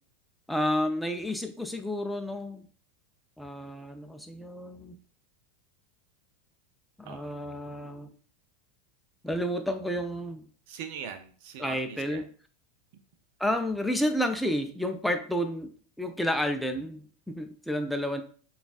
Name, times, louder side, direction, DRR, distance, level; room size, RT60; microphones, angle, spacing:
voice 1, 0.5-2.7 3.4-5.0 7.0-8.1 9.2-10.5 11.6-12.3 13.4-15.7 16.0-18.2, equal, ahead, 5 dB, 0.5 m, -30 dB
voice 2, 10.7-12.2 12.9-13.0, right 8 dB, 65° right, 9 dB, 0.5 m, -41 dB
6.9 x 2.4 x 2.4 m, 0.43 s
hypercardioid pair, 95°, 0 cm